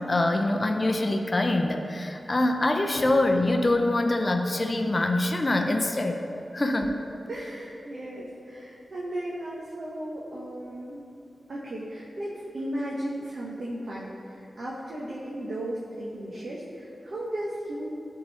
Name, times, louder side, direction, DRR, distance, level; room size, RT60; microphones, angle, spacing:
voice 1, 0.0-6.2 6.5-6.9, left 2 dB, 35° left, 4 dB, 0.5 m, -24 dB
voice 2, 7.3-11.0 11.5-18.0, right 1 dB, 60° right, -5 dB, 1.0 m, -35 dB
11.0 x 3.8 x 4.1 m, 2.8 s
wide cardioid pair, 85°, 0 cm